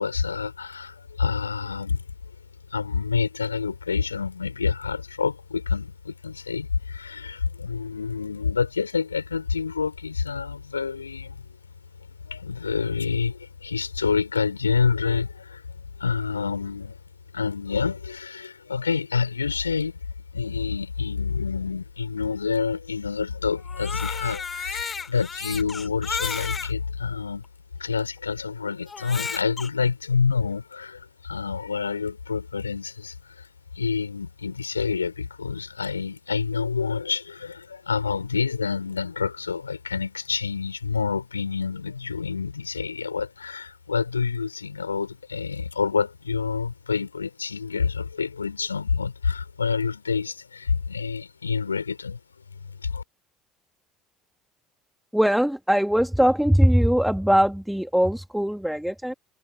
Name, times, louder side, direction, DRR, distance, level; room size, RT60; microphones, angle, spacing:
voice 1, 0.0-2.0 2.7-11.6 12.3-15.6 16.0-17.0 17.3-20.0 20.3-27.4 27.8-33.5 33.8-52.2 52.8-53.0, left 5 dB, 80° left, 6.1 m, -27 dB
Crying sobbing, 23.6-26.7 27.4-27.5 28.9-29.7, left 5 dB, 25° left, 6.4 m, -33 dB
voice 2, 55.1-59.1, equal, ahead, 2.6 m, -21 dB
figure-of-eight pair, 60°, 0 cm